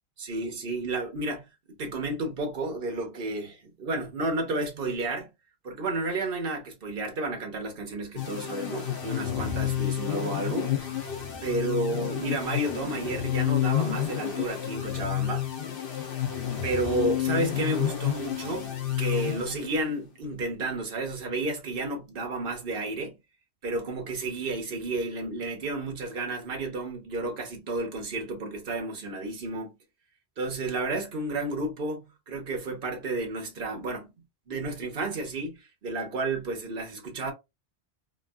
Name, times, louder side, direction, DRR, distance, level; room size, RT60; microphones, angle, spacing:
voice 1, 0.2-1.5 1.8-5.3 5.6-10.8 11.4-15.5 16.6-18.7 19.0-23.2 23.6-29.7 30.4-34.1 34.5-37.3, right 2 dB, 60° right, 1.1 m, -31 dB
sound 1, 8.2-19.9, left 11 dB, 60° left, 0.9 m, -30 dB
3.2 x 2.6 x 2.3 m
omnidirectional pair, 1.1 m